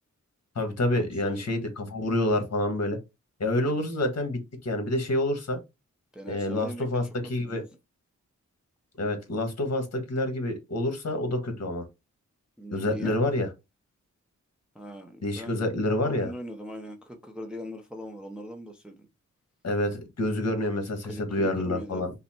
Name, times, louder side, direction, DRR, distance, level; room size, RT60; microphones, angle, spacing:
voice 1, 0.5-3.0 3.4-5.6 6.3-7.0 7.3-7.6 9.0-11.8 12.7-13.5 15.2-16.3 19.6-22.1, left 1 dB, 55° left, 1.5 m, -28 dB
voice 2, 1.2-1.5 3.7-3.8 6.1-6.8 7.2-7.6 12.6-13.2 14.7-15.6 16.0-19.1 21.0-22.0, equal, 5° right, 0.7 m, -40 dB
5.5 x 2.2 x 4.3 m
wide cardioid pair, 145°, 31 cm